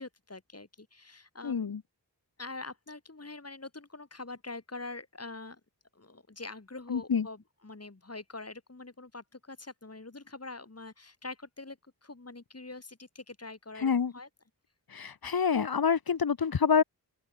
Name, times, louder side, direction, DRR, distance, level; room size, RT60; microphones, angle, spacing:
voice 1, 0.0-1.7 2.4-5.6 5.9-14.3, left 3 dB, 35° left, 3.5 m, -44 dB
voice 2, 1.4-1.8 6.9-7.3 13.8-14.1 14.9-16.8, left 6 dB, 60° left, 1.1 m, -27 dB
open air
wide cardioid pair, 60°, 41 cm